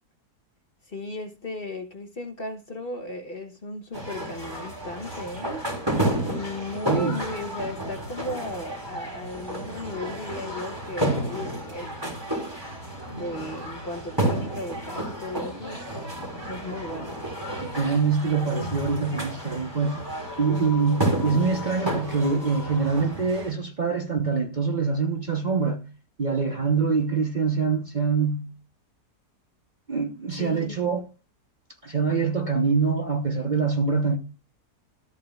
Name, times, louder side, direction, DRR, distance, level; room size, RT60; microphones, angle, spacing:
voice 1, 0.9-5.6 6.3-12.0 13.1-16.0 16.5-17.2 30.3-30.8, left 1 dB, 40° left, 1.2 m, -36 dB
sound 1, 3.9-23.5, right 1 dB, 15° right, 3.3 m, -31 dB
voice 2, 6.9-7.2 17.6-20.1 20.4-25.8 26.2-28.5 29.9-31.0 31.8-34.2, right 5 dB, 35° right, 1.0 m, -24 dB
13.5 x 8.4 x 2.4 m
omnidirectional pair, 1.7 m